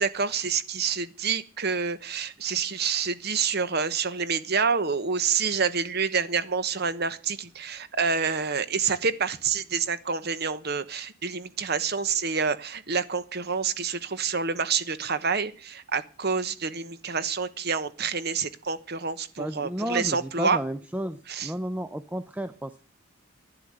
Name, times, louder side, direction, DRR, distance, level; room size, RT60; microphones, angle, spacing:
voice 1, 0.0-20.6 21.3-21.5, right 5 dB, 55° right, 13 dB, 1.2 m, -28 dB
voice 2, 19.4-22.7, equal, 10° right, 10 dB, 0.6 m, -32 dB
12.0 x 10.5 x 7.9 m, 0.40 s
head